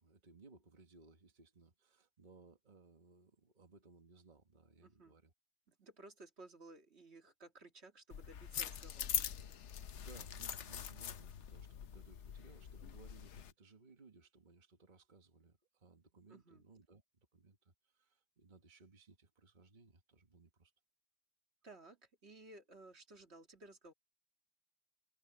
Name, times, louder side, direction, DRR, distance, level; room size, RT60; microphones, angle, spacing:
voice 1, 0.0-5.3 9.9-20.7, right 4 dB, 45° right, 1.7 m, -63 dB
voice 2, 4.8-5.2 5.7-9.4 16.3-16.6 21.6-23.9, right 2 dB, 70° right, 2.5 m, -57 dB
sound 1, 8.1-13.5, left 9 dB, 85° left, 1.1 m, -43 dB
omnidirectional pair, 1.2 m